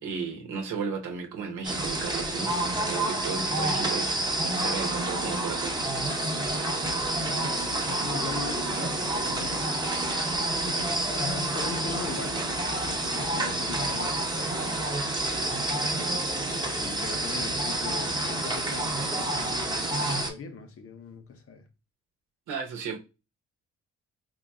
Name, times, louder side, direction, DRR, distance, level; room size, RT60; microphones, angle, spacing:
voice 1, 0.0-2.5 2.9-4.1 4.4-5.8 22.5-23.0, right 5 dB, 80° right, 0.9 m, -34 dB
sound 1, 1.6-20.3, right 1 dB, 15° right, 0.8 m, -29 dB
voice 2, 7.2-9.6 10.6-15.2 15.6-16.1 16.8-21.7, left 5 dB, 50° left, 0.8 m, -40 dB
3.9 x 2.8 x 2.2 m
cardioid pair, 90°, 30 cm